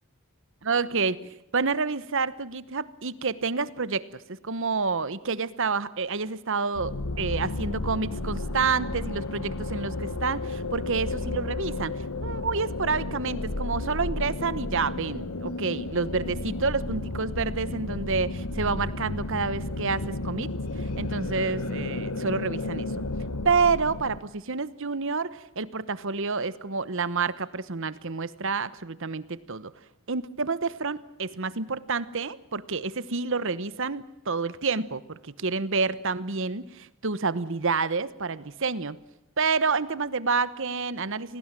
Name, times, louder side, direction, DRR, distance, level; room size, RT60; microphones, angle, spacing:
voice 1, 0.7-20.5 20.8-23.0 23.4-29.7 30.1-39.0 39.4-41.4, right 4 dB, 60° right, 16 dB, 1.1 m, -29 dB
sound 1, 6.8-24.2, left 2 dB, 85° left, 1.3 m, -32 dB
27.0 x 19.5 x 7.6 m, 0.88 s
head